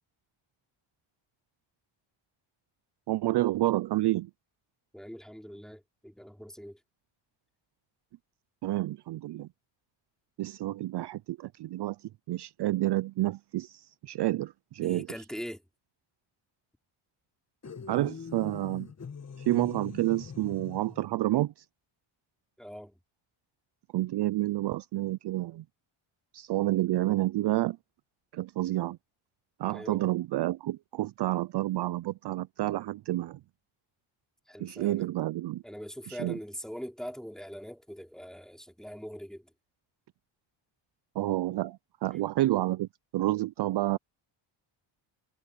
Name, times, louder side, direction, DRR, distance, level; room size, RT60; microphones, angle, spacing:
voice 1, 3.1-4.3 8.6-9.5 10.4-15.1 17.9-18.9 19.4-21.6 23.9-25.6 26.3-27.8 28.3-29.0 29.6-33.4 34.6-35.6 36.1-36.4 41.2-42.9 43.1-44.0, right 16 dB, 55° right, 0.5 m, -29 dB
voice 2, 4.9-6.8 14.8-15.6 22.6-23.0 29.7-30.0 34.5-35.1 35.6-39.5, equal, ahead, 3.3 m, -42 dB
sound 1, 17.6-21.1, left 6 dB, 30° left, 1.9 m, -43 dB
cardioid pair, 100°, 49 cm